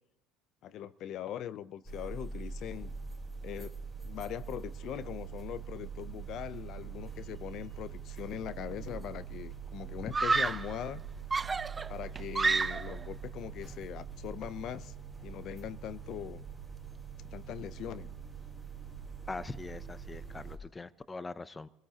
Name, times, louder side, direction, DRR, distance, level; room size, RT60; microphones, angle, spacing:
voice 1, 0.6-2.9 3.4-3.8 4.0-11.0 11.9-14.9 15.2-16.4 17.3-18.1, left 10 dB, 55° left, 0.6 m, -41 dB
sound 1, 1.8-20.6, right 6 dB, ahead, 4.4 m, -44 dB
Screaming, 8.6-9.0 10.1-10.8 11.3-13.0, right 4 dB, 20° right, 0.6 m, -30 dB
voice 2, 19.3-21.7, left 3 dB, 20° left, 0.6 m, -42 dB
28.0 x 17.0 x 2.9 m
supercardioid pair, 100°, 0 cm